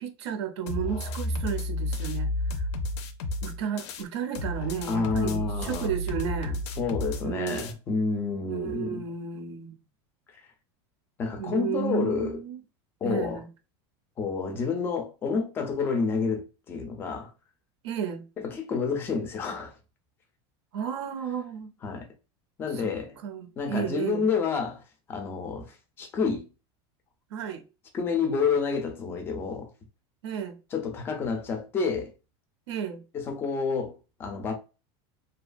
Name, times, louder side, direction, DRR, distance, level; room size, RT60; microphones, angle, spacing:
voice 1, 0.0-2.3 3.4-6.6 7.2-7.7 8.5-9.8 11.4-12.6 13.0-13.5 17.8-18.2 20.7-21.7 22.7-22.9 23.2-24.3 27.3-27.6 30.2-30.6 32.7-33.0, right 8 dB, 85° right, 0.5 m, -33 dB
sound 1, 0.7-4.0 4.3-7.7, left 1 dB, 80° left, 0.4 m, -32 dB
voice 2, 4.9-5.9 6.8-9.0 11.2-12.4 13.0-13.4 14.2-17.3 18.4-19.7 21.8-22.1 22.6-23.2 23.6-24.8 25.1-26.5 27.9-29.7 30.7-32.1 33.1-34.5, left 5 dB, 15° left, 0.3 m, -29 dB
2.7 x 2.3 x 2.4 m
supercardioid pair, 175°, 14 cm